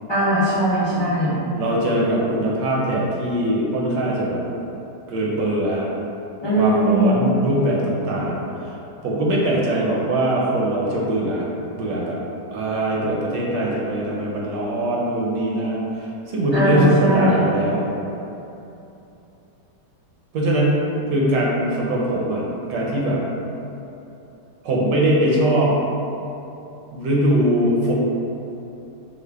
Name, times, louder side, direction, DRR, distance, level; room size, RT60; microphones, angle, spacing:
voice 1, 0.1-1.4 6.4-7.3 16.5-17.5, right 1 dB, 25° left, -13 dB, 0.5 m, -19 dB
voice 2, 1.6-4.4 5.1-5.9 6.6-8.7 9.0-11.5 11.7-12.2 12.5-17.8 20.3-20.8 21.1-22.4 22.7-23.2 24.6-25.7 26.9-27.9, right 1 dB, 80° right, -4 dB, 1.2 m, -21 dB
4.9 x 2.4 x 2.3 m, 2.9 s
omnidirectional pair, 1.9 m